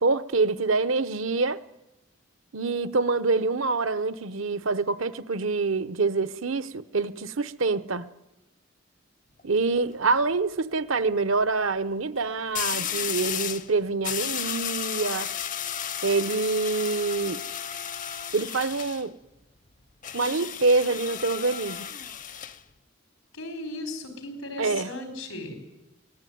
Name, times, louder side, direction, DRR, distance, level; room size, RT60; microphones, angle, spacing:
voice 1, 0.0-1.6 2.5-8.1 9.4-15.3 16.0-17.4 18.3-19.2 20.1-21.9 24.6-24.9, right 3 dB, 75° right, 0.9 m, -26 dB
sound 1, 9.4-9.7 12.5-13.7 14.0-19.0 20.0-22.6, left 9 dB, 40° left, 0.7 m, -33 dB
voice 2, 23.3-25.6, left 2 dB, 90° left, 4.8 m, -36 dB
23.5 x 17.5 x 9.3 m
head